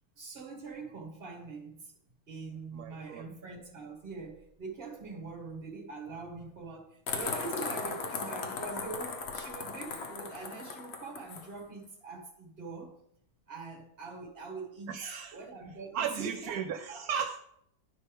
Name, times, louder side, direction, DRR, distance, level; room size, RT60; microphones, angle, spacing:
voice 1, 0.2-1.9 2.3-13.0 13.5-15.0 15.3-16.6 16.9-17.1, right 4 dB, 40° right, 1.8 m, -43 dB
voice 2, 2.7-3.3 14.9-15.4 15.9-17.4, right 7 dB, 80° right, 1.1 m, -35 dB
sound 1, 7.1-11.5, left 4 dB, 50° left, 1.0 m, -37 dB
11.0 x 5.5 x 3.5 m
omnidirectional pair, 1.6 m